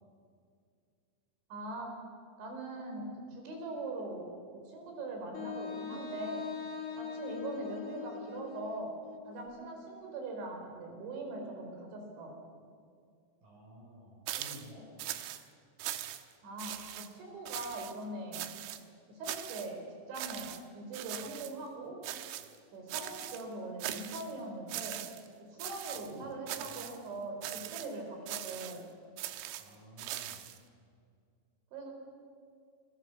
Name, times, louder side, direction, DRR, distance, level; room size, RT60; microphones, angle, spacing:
voice 1, 1.5-2.0 2.4-4.3 4.7-6.4 7.0-8.9 9.3-12.4 16.4-18.5 19.1-19.8 20.1-22.0 22.7-25.0 25.6-28.9 31.7-31.9, right 2 dB, 70° right, 2 dB, 7.0 m, -41 dB
Wind instrument woodwind instrument, 5.3-9.4, left 7 dB, 60° left, 3.8 m, -42 dB
voice 2, 13.4-14.9 26.1-26.3 29.6-30.4, left 1 dB, 50° right, -4 dB, 6.6 m, -52 dB
sound 1, 14.3-14.7 15.0-15.4 15.8-16.3 16.6-17.1 17.5-17.9 18.3-18.8 19.2-19.7 20.2-20.6 20.9-21.5 22.0-22.6 22.9-23.4 23.8-24.3 24.7-25.3 25.6-26.1 26.5-27.0 27.4-27.9 28.3-28.8 29.2-30.6, right 13 dB, 90° right, 3.5 m, -41 dB
27.5 x 23.0 x 7.1 m, 2.2 s
omnidirectional pair, 5.5 m